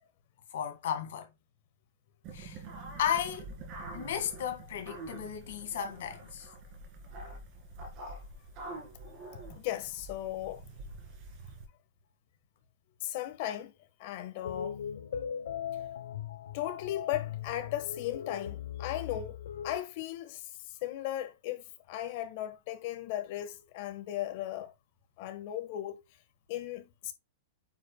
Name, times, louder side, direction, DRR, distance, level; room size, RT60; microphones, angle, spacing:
voice 1, 0.5-1.3 2.3-2.6 3.0-3.5 3.9-6.5, left 9 dB, 60° left, 1.8 m, -34 dB
sound 1, 2.2-11.7, right 2 dB, 30° right, 2.2 m, -46 dB
voice 2, 9.5-10.7 13.0-13.7 14.0-14.8 16.5-20.5 20.8-24.7 25.2-26.0 26.5-27.1, left 13 dB, 40° left, 1.2 m, -36 dB
sound 2, 14.4-19.8, left 9 dB, 90° left, 0.8 m, -39 dB
9.2 x 5.2 x 2.2 m
supercardioid pair, 175°, 0 cm